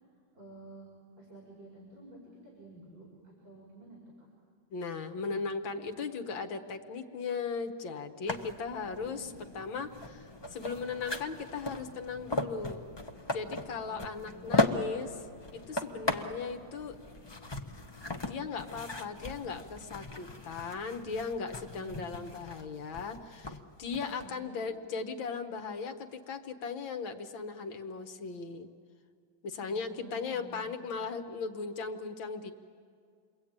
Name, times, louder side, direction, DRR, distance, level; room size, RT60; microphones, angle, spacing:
voice 1, 0.3-0.9 1.2-4.3 8.8-9.4 13.9-14.7 21.6-22.1 24.1-24.6 29.7-30.7, right 2 dB, 65° right, -4 dB, 5.9 m, -52 dB
voice 2, 4.7-12.9 13.3-15.3 15.7-17.0 18.3-28.7 29.4-32.5, left 5 dB, 75° left, 6 dB, 2.1 m, -37 dB
sound 1, 8.3-24.3, left 2 dB, 35° left, 0.4 m, -37 dB
29.5 x 22.0 x 8.8 m, 2.2 s
omnidirectional pair, 2.2 m